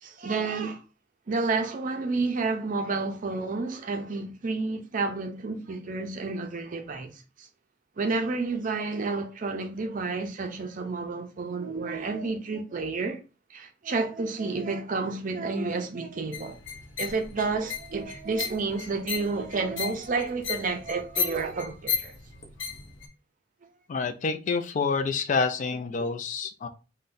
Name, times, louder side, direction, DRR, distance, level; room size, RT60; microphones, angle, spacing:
voice 1, 0.0-0.8 1.3-7.5 8.0-13.2 13.5-16.6 17.0-22.1, right 3 dB, 45° right, 0.5 m, -30 dB
sound 1, 16.3-23.1, left 7 dB, 75° left, 0.7 m, -35 dB
voice 2, 23.9-26.7, left 4 dB, 40° left, 0.4 m, -28 dB
3.8 x 2.2 x 2.5 m
head